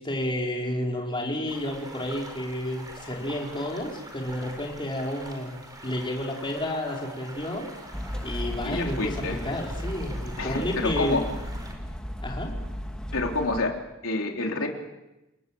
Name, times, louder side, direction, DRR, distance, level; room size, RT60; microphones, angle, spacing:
voice 1, 0.0-5.5 5.8-7.7 8.2-11.3 12.2-12.5, left 1 dB, 25° left, -1 dB, 5.0 m, -31 dB
sound 1, 1.5-11.7, right 1 dB, 20° right, 4.8 m, -44 dB
sound 2, 7.9-13.6, equal, 5° left, 2.3 m, -35 dB
voice 2, 8.6-9.4 10.4-11.2 13.1-13.7 14.0-14.7, left 2 dB, 80° left, 2 dB, 3.4 m, -28 dB
30.0 x 19.5 x 7.7 m, 0.97 s
head